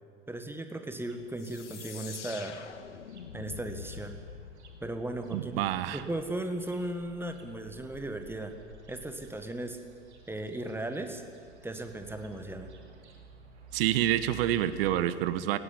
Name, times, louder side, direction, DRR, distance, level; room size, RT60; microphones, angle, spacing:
voice 1, 0.3-2.6 3.3-4.2 4.8-8.6 8.9-9.8 10.3-11.2 11.6-12.7, right 1 dB, 5° right, 7 dB, 1.7 m, -36 dB
sound 1, 1.1-15.0, right 4 dB, 70° right, 2.8 m, -53 dB
sound 2, 1.4-5.9, left 7 dB, 80° left, 1.2 m, -46 dB
voice 2, 5.3-6.0 13.7-15.6, right 12 dB, 55° right, 14 dB, 1.3 m, -28 dB
18.0 x 16.5 x 9.8 m, 2.2 s
figure-of-eight pair, 85°, 35 cm